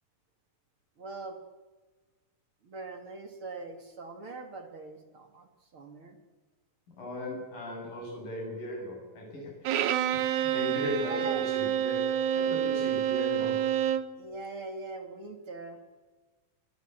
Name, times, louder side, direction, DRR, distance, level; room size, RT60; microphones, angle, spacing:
voice 1, 1.0-1.4 2.6-6.2 11.0-11.4 14.2-15.8, right 2 dB, 40° right, 5 dB, 3.0 m, -42 dB
voice 2, 7.0-13.7, left 1 dB, 85° left, 1 dB, 9.5 m, -37 dB
Bowed string instrument, 9.7-14.2, right 10 dB, 70° right, 2.4 m, -28 dB
23.5 x 22.5 x 8.2 m, 1.3 s
omnidirectional pair, 3.8 m